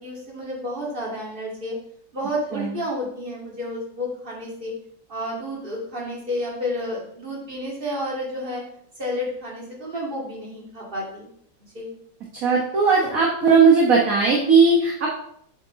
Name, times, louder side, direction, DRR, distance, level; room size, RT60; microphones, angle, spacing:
voice 1, 0.0-1.8 2.1-4.7 5.1-8.6 9.0-11.3 11.7-11.9, left 1 dB, 25° right, -3 dB, 2.4 m, -30 dB
voice 2, 12.4-15.1, right 4 dB, 50° right, -2 dB, 1.5 m, -17 dB
7.4 x 7.0 x 3.7 m, 0.68 s
omnidirectional pair, 2.1 m